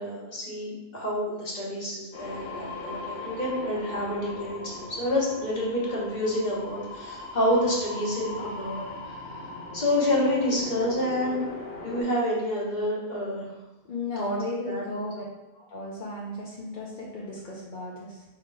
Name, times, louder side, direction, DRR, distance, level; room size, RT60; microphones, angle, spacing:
voice 1, 0.0-9.1 9.7-13.5 14.2-15.0, left 1 dB, 30° left, -5 dB, 1.2 m, -28 dB
sound 1, 2.1-12.0, left 3 dB, 85° left, 1.4 m, -39 dB
voice 2, 13.9-15.2 15.5-18.2, left 2 dB, 50° left, -5 dB, 0.6 m, -35 dB
3.7 x 2.8 x 4.7 m, 1.0 s
omnidirectional pair, 1.5 m